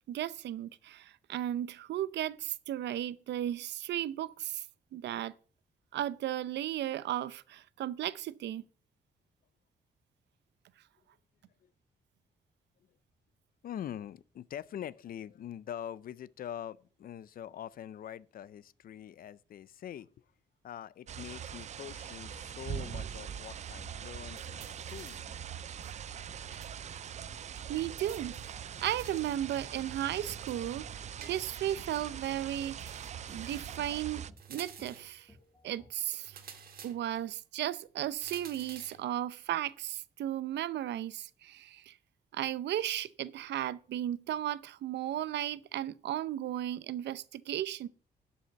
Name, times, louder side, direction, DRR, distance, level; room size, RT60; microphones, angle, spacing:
voice 1, 0.0-4.6 4.9-5.3 5.9-8.6 27.7-28.3 28.8-30.8 31.2-33.0 33.3-34.2 34.5-35.3 35.6-36.4 36.8-42.0 42.3-47.9, right 12 dB, 85° right, 0.6 m, -35 dB
voice 2, 13.6-20.1 20.6-25.2, left 10 dB, 55° left, 0.5 m, -44 dB
sound 1, 21.1-34.3, right 9 dB, 40° right, 0.4 m, -42 dB
sound 2, 21.8-35.9, left 1 dB, ahead, 1.8 m, -60 dB
sound 3, 24.4-25.3 25.8-26.8 27.0-27.1 28.1-29.3 30.5-31.7 32.8-33.9 34.4-35.2 36.2-37.3 38.2-39.1, right 6 dB, 60° right, 1.8 m, -51 dB
11.5 x 5.6 x 6.9 m
cardioid pair, 135°, 18 cm